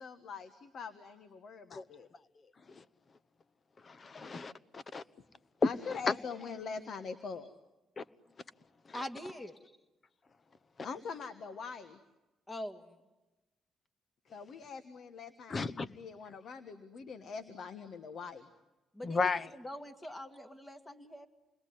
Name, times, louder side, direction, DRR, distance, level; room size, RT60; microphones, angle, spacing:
voice 1, 0.0-2.1 5.6-7.5 10.8-12.0 14.3-18.5, left 5 dB, 60° left, 1.4 m, -43 dB
voice 2, 3.9-5.0 5.6-5.7 8.0-8.1 8.9-9.0 15.5-15.9 19.0-19.5, left 4 dB, 35° left, 0.9 m, -33 dB
voice 3, 8.9-9.5 12.5-12.8 18.9-21.3, left 1 dB, 15° left, 2.2 m, -43 dB
28.0 x 21.0 x 9.4 m
cardioid pair, 90°, 0 cm